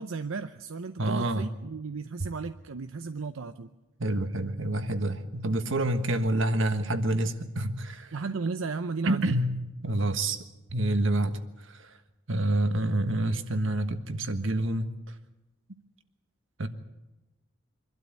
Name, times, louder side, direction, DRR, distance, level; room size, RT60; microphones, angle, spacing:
voice 1, 0.0-3.7 8.1-9.4, right 4 dB, 85° right, 9 dB, 0.7 m, -34 dB
voice 2, 1.0-1.5 4.0-8.1 9.0-9.5 9.8-10.4 10.7-11.4 11.7-11.9 12.3-14.9 16.6-16.7, right 1 dB, 70° right, 9 dB, 1.4 m, -27 dB
24.5 x 12.5 x 8.5 m, 1.1 s
head